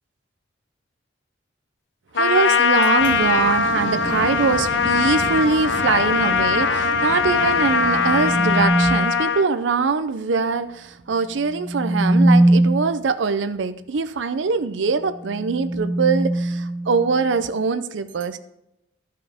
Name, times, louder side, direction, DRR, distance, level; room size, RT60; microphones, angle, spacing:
Trumpet, 2.1-9.5, left 5 dB, 75° left, 0.8 m, -21 dB
voice 1, 2.1-18.4, right 5 dB, 75° right, 0.5 m, -23 dB
Waves surf, 3.0-8.7, left 1 dB, 55° left, 1.5 m, -32 dB
sound 1, 3.8-4.3 7.4-9.3 11.4-13.1 15.1-17.4, right 1 dB, 5° right, 0.3 m, -22 dB
13.0 x 5.7 x 5.0 m
head